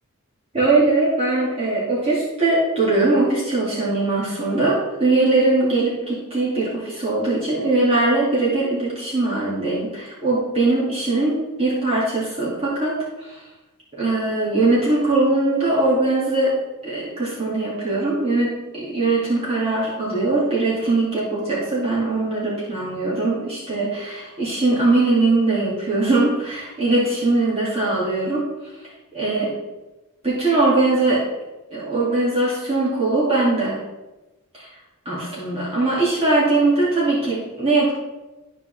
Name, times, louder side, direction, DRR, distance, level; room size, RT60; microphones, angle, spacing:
voice 1, 0.5-13.4 14.0-16.5 16.8-28.5 29.1-29.5 30.2-31.2 31.7-33.8 34.5-34.7 35.0-37.9, right 2 dB, 25° right, -8 dB, 2.5 m, -21 dB
12.5 x 5.3 x 3.4 m, 1.1 s
head